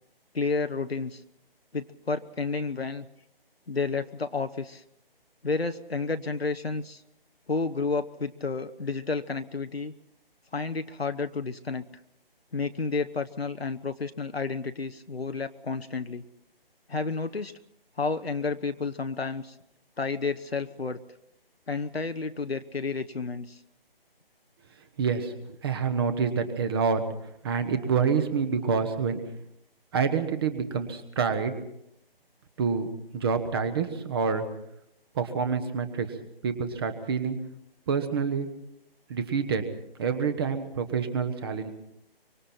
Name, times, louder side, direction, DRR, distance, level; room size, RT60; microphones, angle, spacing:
voice 1, 0.3-1.2 1.7-3.1 3.7-4.8 5.4-7.0 7.5-9.9 10.5-11.9 12.5-16.3 16.9-17.5 18.0-19.5 20.0-21.0 21.7-23.6, left 4 dB, 85° left, 8 dB, 1.0 m, -31 dB
voice 2, 25.0-25.3 25.6-27.0 27.4-29.2 29.9-31.5 32.6-34.4 35.1-36.1 36.4-37.4 37.9-38.5 39.1-39.6 40.0-41.7, right 6 dB, 25° right, 10 dB, 1.2 m, -27 dB
25.0 x 24.0 x 4.4 m, 0.79 s
figure-of-eight pair, 145°, 30 cm